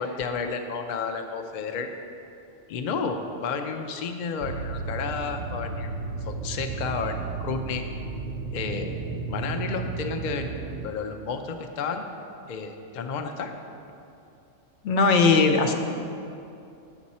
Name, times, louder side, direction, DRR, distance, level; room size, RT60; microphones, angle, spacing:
voice 1, 0.0-1.9 2.7-6.0 6.2-7.8 8.5-8.9 9.3-10.5 10.8-12.0 12.5-13.5, left 5 dB, 60° left, 5 dB, 0.5 m, -31 dB
sound 1, 4.4-10.9, right 4 dB, 60° right, 0.6 m, -33 dB
voice 2, 14.8-15.7, left 4 dB, 75° left, 4 dB, 0.9 m, -19 dB
8.5 x 6.1 x 4.1 m, 2.7 s
omnidirectional pair, 1.3 m